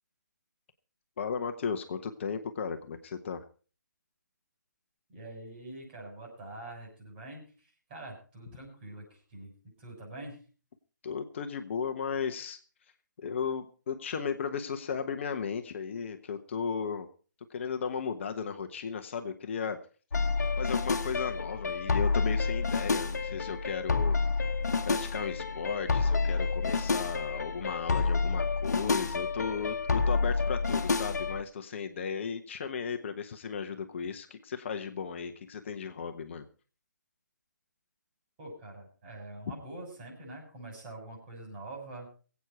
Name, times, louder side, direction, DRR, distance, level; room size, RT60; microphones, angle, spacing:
voice 1, 1.2-3.4 11.0-12.6 13.2-17.1 17.5-19.8 20.6-24.2 24.9-36.5, left 6 dB, 40° left, 7 dB, 1.0 m, -35 dB
voice 2, 5.1-9.5 9.8-10.4 38.4-42.1, right 2 dB, 30° right, 0 dB, 6.7 m, -45 dB
sound 1, 20.1-31.4, left 4 dB, 60° left, 1.3 m, -29 dB
22.0 x 8.5 x 4.4 m, 0.38 s
figure-of-eight pair, 140°, 10 cm